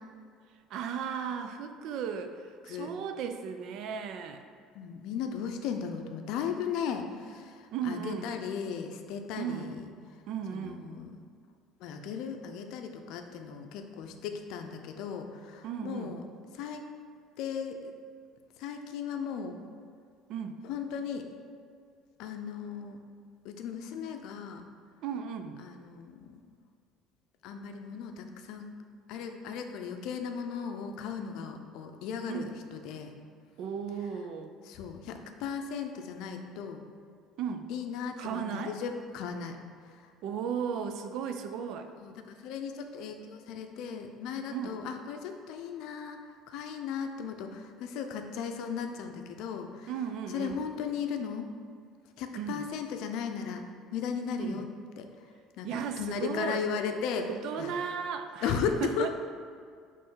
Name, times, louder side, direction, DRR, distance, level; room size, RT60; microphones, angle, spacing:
voice 1, 0.7-4.4 7.7-8.3 9.4-9.7 10.3-10.8 15.6-16.1 20.3-20.6 25.0-25.6 32.3-32.5 33.6-34.5 37.4-37.7 38.2-38.8 40.2-41.9 44.5-44.8 49.9-50.6 52.3-52.6 54.4-54.7 55.6-56.7 57.4-59.1, right 7 dB, 60° right, 7 dB, 0.4 m, -35 dB
voice 2, 4.7-9.9 10.5-11.2 11.8-16.2 16.5-16.8 17.4-17.9 18.6-19.6 20.6-21.3 22.2-23.0 23.4-24.6 25.6-26.4 27.4-28.7 29.1-33.1 34.7-36.8 37.7-39.6 40.0-40.1 42.0-46.2 46.5-49.9 50.3-51.5 52.2-53.6 53.9-54.7 55.0-55.1 55.6-57.2 57.6-57.7 58.4-59.1, left 6 dB, 70° left, 5 dB, 0.5 m, -36 dB
5.5 x 3.2 x 5.5 m, 2.2 s
cardioid pair, 130°, 0 cm